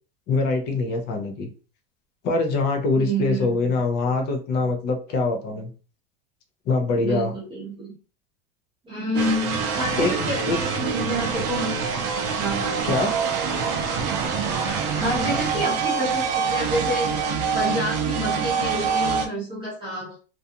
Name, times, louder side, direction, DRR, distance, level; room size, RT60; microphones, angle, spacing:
voice 1, 0.3-1.5 2.2-5.7 6.7-7.3 10.0-10.6 12.8-13.2, left 3 dB, 35° left, 3 dB, 0.6 m, -24 dB
voice 2, 3.0-3.8 7.0-7.9 8.8-11.7 12.4-12.9 14.7-20.1, equal, 15° right, -6 dB, 0.8 m, -29 dB
sound 1, 9.1-19.3, right 6 dB, 45° right, 0.6 m, -25 dB
2.6 x 2.3 x 2.7 m, 0.37 s
supercardioid pair, 160°, 30 cm